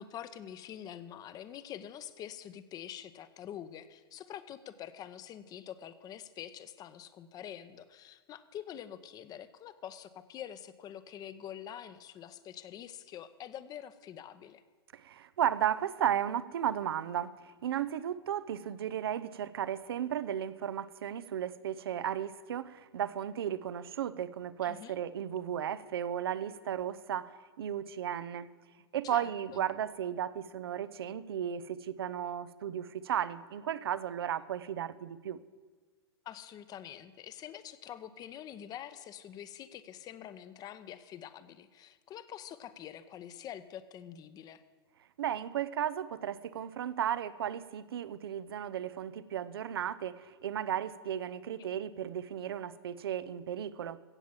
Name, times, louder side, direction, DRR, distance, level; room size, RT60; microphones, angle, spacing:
voice 1, 0.0-14.6 24.6-25.0 29.0-29.6 36.2-44.6, left 10 dB, 30° left, 13 dB, 0.8 m, -46 dB
voice 2, 14.9-28.5 28.9-35.4 45.2-54.0, right 10 dB, 65° right, 16 dB, 0.6 m, -35 dB
16.0 x 7.3 x 7.3 m, 1.5 s
figure-of-eight pair, 100°, 13 cm